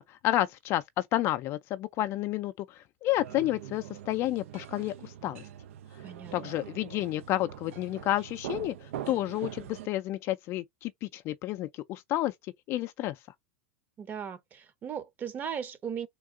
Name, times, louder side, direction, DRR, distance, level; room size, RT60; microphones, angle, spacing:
voice 1, 0.0-5.4 6.3-13.2, left 15 dB, 40° left, 0.4 m, -31 dB
sound 1, 3.2-9.9, right 11 dB, 80° right, 0.4 m, -43 dB
voice 2, 6.0-6.5 14.0-16.1, right 8 dB, 25° right, 0.7 m, -37 dB
3.6 x 2.4 x 3.6 m
supercardioid pair, 135°, 7 cm